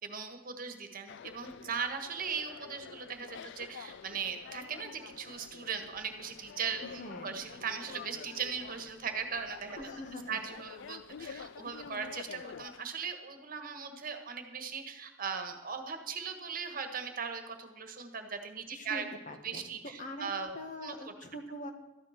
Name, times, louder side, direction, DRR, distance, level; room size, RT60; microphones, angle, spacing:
voice 1, 0.0-9.9 10.3-19.0 19.4-20.5 20.8-21.1, right 6 dB, 45° right, 6 dB, 1.5 m, -39 dB
sound 1, 1.1-12.8, left 6 dB, 65° left, 0.4 m, -48 dB
voice 2, 6.8-7.3 9.8-10.4 18.7-19.7 20.0-20.3 20.5-21.7, left 1 dB, 40° left, 5 dB, 1.5 m, -43 dB
13.5 x 10.5 x 5.9 m, 1.1 s
head